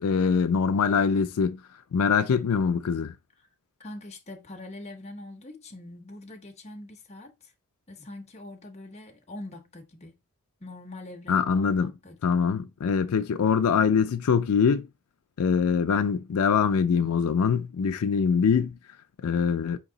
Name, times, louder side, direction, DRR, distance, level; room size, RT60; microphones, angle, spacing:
voice 1, 0.0-1.6 1.9-3.1 11.3-11.9 12.2-14.9 15.4-18.8 19.2-19.8, left 6 dB, 80° left, 0.4 m, -23 dB
voice 2, 3.8-7.5 7.9-10.2 10.6-12.3, left 2 dB, 30° left, 0.8 m, -43 dB
4.6 x 3.0 x 3.8 m
head